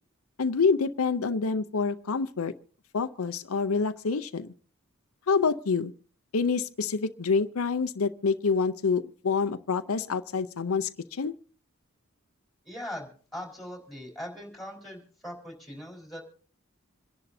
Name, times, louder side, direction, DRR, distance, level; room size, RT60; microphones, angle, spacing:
voice 1, 0.4-2.5 2.9-4.5 5.3-5.9 6.3-11.3, left 5 dB, 85° left, 11 dB, 0.6 m, -27 dB
voice 2, 12.6-16.2, left 1 dB, ahead, -1 dB, 4.3 m, -40 dB
27.0 x 11.0 x 2.7 m, 0.43 s
head